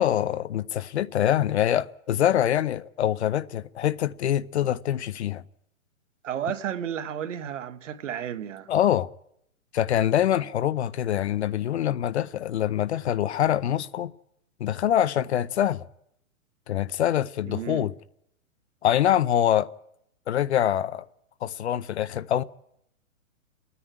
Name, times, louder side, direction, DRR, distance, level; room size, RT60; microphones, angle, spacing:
voice 1, 0.0-5.4 8.7-9.1 9.7-14.1 14.6-15.8 16.7-17.9 18.8-19.7 20.3-21.0 21.4-22.4, left 11 dB, 50° left, 0.7 m, -24 dB
voice 2, 6.2-8.7 10.3-10.5 17.4-17.9, right 9 dB, 60° right, 1.4 m, -33 dB
29.0 x 9.9 x 9.1 m
hypercardioid pair, 160°, 41 cm